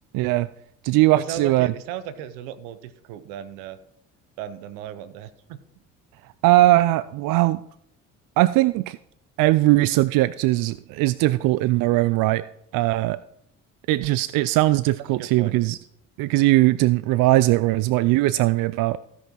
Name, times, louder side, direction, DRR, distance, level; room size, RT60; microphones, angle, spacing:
voice 1, 0.1-0.5 0.8-1.7 6.4-7.6 8.4-9.0 9.4-12.4 12.7-13.2 13.9-15.8 16.2-19.0, right 17 dB, 60° right, 17 dB, 0.5 m, -20 dB
voice 2, 1.1-3.8 4.4-5.6 15.2-15.6, right 10 dB, 75° right, 14 dB, 1.0 m, -36 dB
15.5 x 5.6 x 4.6 m, 0.73 s
hypercardioid pair, 60°, 39 cm